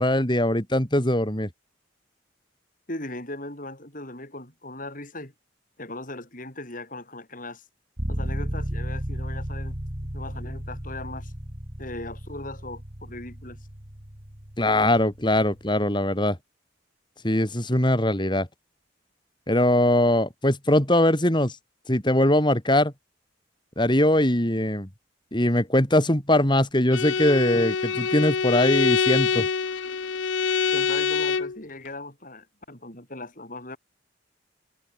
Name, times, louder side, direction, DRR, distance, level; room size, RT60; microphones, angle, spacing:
voice 1, 0.0-1.5 14.6-16.4 17.2-18.5 19.5-21.6 21.9-22.9 23.8-24.9 25.3-29.5, left 1 dB, 25° left, 3.9 m, -21 dB
voice 2, 2.9-5.3 5.8-7.6 8.1-9.8 10.1-11.3 11.8-13.7 30.7-33.8, left 2 dB, 45° left, 7.4 m, -38 dB
sound 1, 8.0-15.7, equal, 30° right, 3.2 m, -34 dB
Bowed string instrument, 26.9-31.6, left 5 dB, 80° left, 0.7 m, -25 dB
open air
head